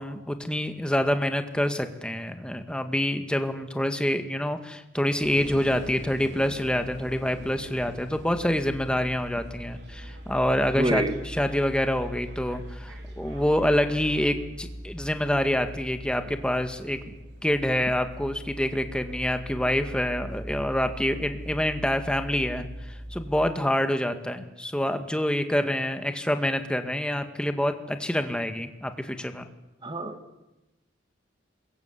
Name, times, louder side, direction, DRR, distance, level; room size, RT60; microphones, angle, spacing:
voice 1, 0.0-17.1 17.4-22.7 23.1-29.5, equal, 5° left, 7 dB, 1.9 m, -27 dB
sound 1, 5.2-23.5, equal, 60° right, 4.5 m, -41 dB
voice 2, 10.8-11.1 29.8-30.4, right 1 dB, 25° right, 7 dB, 2.4 m, -27 dB
27.0 x 22.5 x 8.4 m, 0.97 s
head